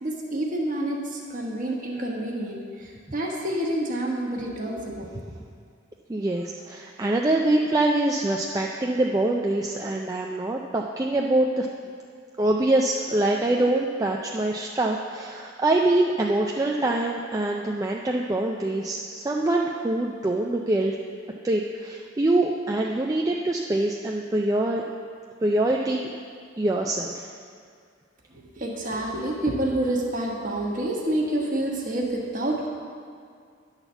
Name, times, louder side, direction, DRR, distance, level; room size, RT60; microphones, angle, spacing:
voice 1, 0.0-5.1 28.3-32.7, right 1 dB, 40° right, -1 dB, 1.2 m, -28 dB
voice 2, 6.1-11.7 12.4-21.0 21.4-24.8 25.4-26.1 26.6-27.3, right 2 dB, 15° right, 0 dB, 0.3 m, -24 dB
10.5 x 4.1 x 6.9 m, 2.2 s
head